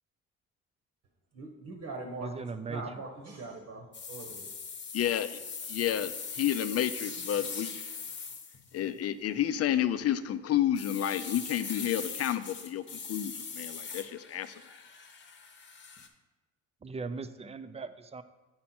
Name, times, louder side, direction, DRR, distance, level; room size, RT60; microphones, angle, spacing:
voice 1, 1.3-4.5, right 3 dB, 65° right, 2 dB, 1.1 m, -42 dB
voice 2, 2.2-2.8 16.8-18.2, right 4 dB, 20° right, 12 dB, 0.4 m, -38 dB
sound 1, 3.9-8.9 9.9-10.2 10.8-16.1, left 5 dB, 40° left, 0.9 m, -41 dB
voice 3, 4.9-5.4 5.7-7.8 8.7-14.5, left 11 dB, 55° left, 12 dB, 0.5 m, -30 dB
8.5 x 4.3 x 4.3 m, 1.2 s
cardioid pair, 90°, 30 cm